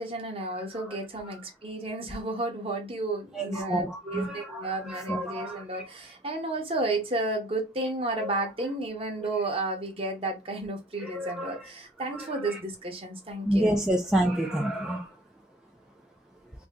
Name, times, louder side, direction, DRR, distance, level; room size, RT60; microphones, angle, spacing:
voice 1, 0.0-13.7, right 2 dB, 35° right, 0.9 m, -32 dB
voice 2, 3.4-4.6 4.9-5.6 11.0-11.5 13.5-15.0, right 1 dB, 5° right, 0.3 m, -28 dB
2.7 x 2.6 x 3.4 m
head